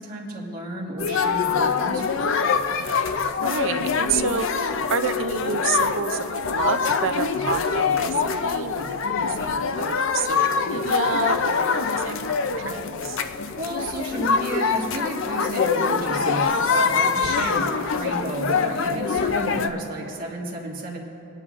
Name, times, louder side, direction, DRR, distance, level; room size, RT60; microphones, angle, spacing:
voice 1, 0.0-2.2 13.2-21.0, right 1 dB, 40° right, -3 dB, 1.5 m, -32 dB
sound 1, 1.0-19.7, left 5 dB, 55° left, 0.4 m, -24 dB
voice 2, 3.4-6.3 6.5-13.2, right 6 dB, 60° right, 10 dB, 0.4 m, -29 dB
23.5 x 9.7 x 2.5 m, 2.9 s
head